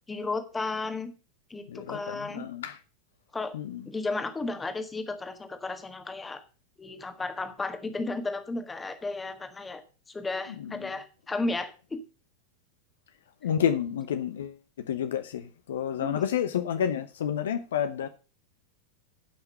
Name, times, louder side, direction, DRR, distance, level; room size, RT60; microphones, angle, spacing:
voice 1, 0.1-1.1 1.5-2.4 3.3-3.6 3.9-6.4 6.8-9.8 10.1-12.0 16.0-16.2, left 3 dB, 10° left, 1.5 m, -33 dB
voice 2, 1.7-2.8 3.5-3.8 10.6-10.9 13.4-14.6 14.9-18.1, left 9 dB, 60° left, 0.8 m, -30 dB
11.5 x 5.9 x 6.6 m
figure-of-eight pair, 90°, 0 cm